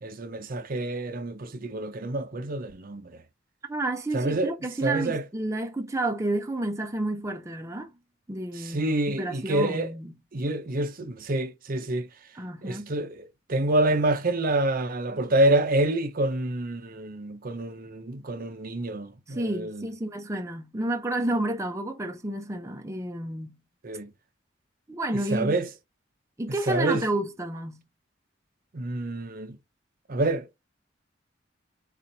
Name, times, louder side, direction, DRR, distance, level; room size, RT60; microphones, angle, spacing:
voice 1, 0.0-3.1 4.1-4.5 4.8-5.2 8.6-9.9 10.3-12.1 12.6-19.9 23.8-24.1 25.3-25.7 26.7-27.0 28.7-29.6 30.1-30.5, right 1 dB, 50° right, 0.7 m, -27 dB
voice 2, 3.7-7.9 8.3-10.1 12.3-12.9 19.3-23.6 24.9-25.5 26.4-27.8, right 1 dB, 15° right, 0.6 m, -30 dB
4.3 x 4.2 x 2.7 m
head